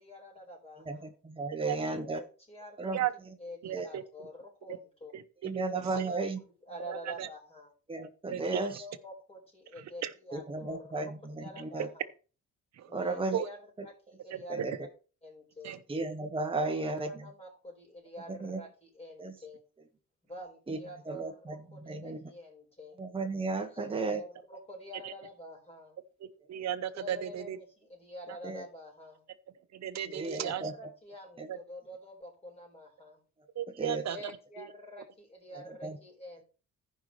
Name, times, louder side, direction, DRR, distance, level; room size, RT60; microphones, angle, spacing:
voice 1, 0.0-1.1 2.0-3.0 3.4-5.1 5.9-7.7 8.5-11.1 11.4-12.1 12.9-13.6 13.8-14.7 15.2-15.8 16.6-19.6 20.2-23.0 23.7-26.0 26.9-29.2 30.2-33.2 34.1-36.4, equal, 20° left, -1 dB, 4.9 m, -47 dB
voice 2, 0.8-2.2 2.8-3.0 3.7-3.9 5.4-6.4 7.9-8.8 10.3-11.9 12.9-13.4 14.5-14.9 15.9-17.3 18.3-18.6 19.2-19.4 20.7-20.8 21.0-21.6 21.8-22.3 23.0-24.2 28.4-28.6 30.1-30.7 31.4-31.5 33.8-34.0 35.8-36.0, right 3 dB, 20° right, 5 dB, 1.2 m, -34 dB
voice 3, 3.6-4.0 5.1-6.1 6.9-7.3 8.3-8.6 10.0-10.1 12.8-12.9 13.3-13.5 14.3-14.7 15.6-15.8 23.9-24.0 25.0-25.1 26.2-27.6 29.8-30.6 31.5-31.6 33.6-34.3 34.6-34.7, right 10 dB, 60° right, 11 dB, 1.0 m, -35 dB
15.0 x 5.4 x 3.2 m, 0.36 s
cardioid pair, 90°, 30 cm